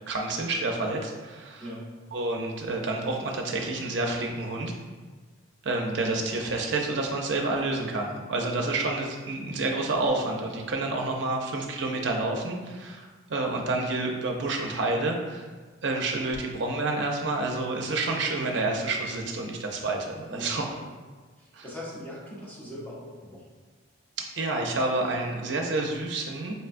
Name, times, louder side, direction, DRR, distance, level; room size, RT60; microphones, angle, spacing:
voice 1, 0.1-1.6 2.1-4.7 5.6-15.5 15.8-20.7 21.5-21.6 24.2-26.6, right 2 dB, 60° right, 1 dB, 0.5 m, -29 dB
voice 2, 1.6-1.9 8.6-8.8 20.3-20.8 21.4-23.5, equal, 10° left, -7 dB, 0.7 m, -41 dB
5.2 x 2.2 x 2.5 m, 1.4 s
head